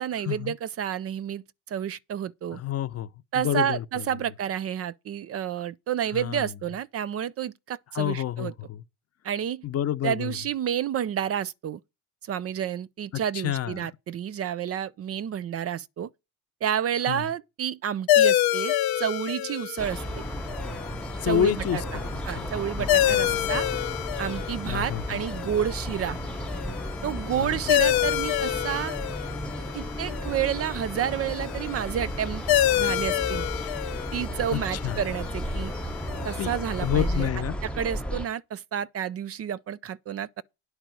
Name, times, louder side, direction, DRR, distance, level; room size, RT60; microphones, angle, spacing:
voice 1, 0.0-2.6 3.3-8.5 9.2-9.6 10.0-11.8 12.3-16.1 16.6-20.2 21.2-23.7 24.2-26.2 27.0-29.0 29.7-33.5 34.1-35.7 36.2-37.3 37.6-40.4, right 9 dB, 40° right, 0.5 m, -30 dB
voice 2, 2.5-3.1 3.4-3.8 6.1-6.5 7.9-8.8 9.6-10.3 13.3-13.9 17.1-17.2 21.2-22.1 22.4-22.5 22.8-23.6 24.7-25.0 27.4-27.5 34.5-35.0 36.4-36.5 36.8-37.6, left 11 dB, 45° left, 0.7 m, -28 dB
sound 1, 18.1-37.2, left 12 dB, 80° left, 0.8 m, -28 dB
sound 2, 19.8-38.3, equal, 5° left, 0.7 m, -34 dB
10.0 x 4.6 x 7.7 m
cardioid pair, 110°, 36 cm